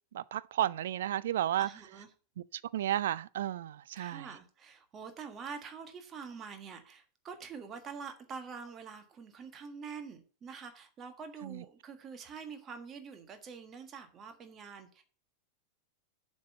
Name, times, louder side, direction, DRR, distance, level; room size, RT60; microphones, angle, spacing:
voice 1, 0.1-1.7 2.5-4.3 11.4-11.6, right 12 dB, 60° right, 0.3 m, -33 dB
voice 2, 1.6-2.1 4.0-15.0, right 6 dB, 25° right, 1.5 m, -46 dB
7.5 x 5.3 x 6.8 m
figure-of-eight pair, 90°, 0 cm